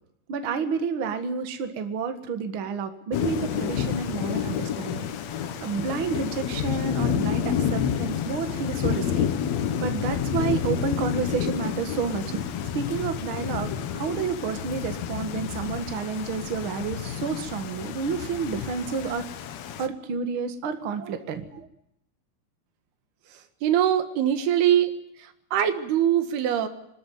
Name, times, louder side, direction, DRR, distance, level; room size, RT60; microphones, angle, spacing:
voice 1, 0.3-9.3 9.6-19.3 19.8-21.7, right 5 dB, 45° right, 7 dB, 1.9 m, -30 dB
Thunder / Rain, 3.1-19.9, left 8 dB, 70° left, 1.7 m, -29 dB
voice 2, 23.6-24.9 25.5-26.7, right 10 dB, 85° right, 8 dB, 3.6 m, -22 dB
24.0 x 13.0 x 9.4 m, 0.80 s
omnidirectional pair, 4.4 m